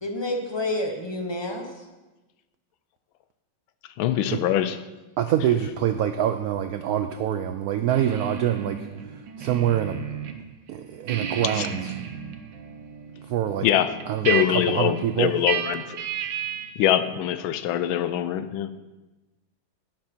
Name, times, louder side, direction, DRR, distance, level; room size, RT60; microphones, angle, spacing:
voice 1, 0.0-1.8, left 1 dB, 20° left, 3 dB, 0.8 m, -29 dB
voice 2, 4.0-4.8 11.5-11.7 13.6-13.9 14.2-16.0 16.8-18.7, left 11 dB, 80° left, 12 dB, 1.4 m, -23 dB
voice 3, 5.2-10.0 10.7-11.9 13.2-13.7 14.1-15.3, right 10 dB, 85° right, 9 dB, 0.8 m, -25 dB
sound 1, 7.9-10.4 10.7-16.8, right 8 dB, 70° right, 1.5 m, -33 dB
11.5 x 9.8 x 4.4 m, 1.1 s
omnidirectional pair, 2.2 m